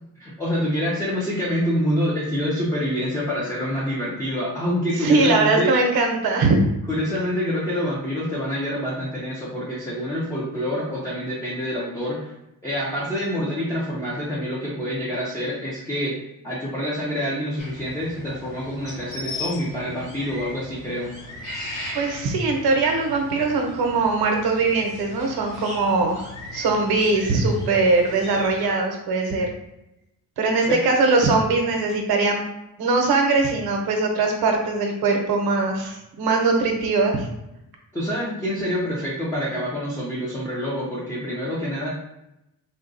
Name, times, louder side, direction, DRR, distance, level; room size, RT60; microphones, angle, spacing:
voice 1, 0.2-5.7 6.9-12.3 12.6-16.1 16.4-21.1 30.7-30.8 37.9-41.9, equal, 10° left, -7 dB, 0.6 m, -26 dB
voice 2, 5.0-6.6 21.9-29.5 30.4-32.4 32.8-37.3, right 3 dB, 75° right, 2 dB, 0.8 m, -21 dB
sound 1, 17.6-28.6, left 1 dB, 50° left, 1.3 m, -38 dB
3.8 x 2.3 x 2.6 m, 0.87 s
cardioid pair, 150°, 37 cm